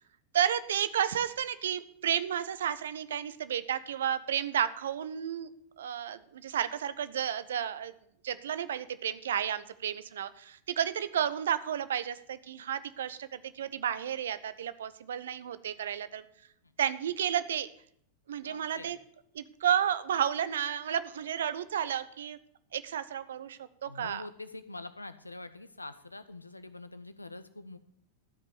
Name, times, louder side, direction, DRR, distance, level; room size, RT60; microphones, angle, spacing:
voice 1, 0.3-5.5 5.8-7.9 8.2-16.2 16.8-17.7 18.3-19.0 19.3-22.4 22.7-24.2, right 9 dB, 60° right, 14 dB, 0.6 m, -32 dB
voice 2, 18.4-18.9 23.9-27.8, left 2 dB, 80° left, 13 dB, 0.7 m, -45 dB
13.0 x 5.3 x 8.2 m, 0.68 s
figure-of-eight pair, 90°, 0 cm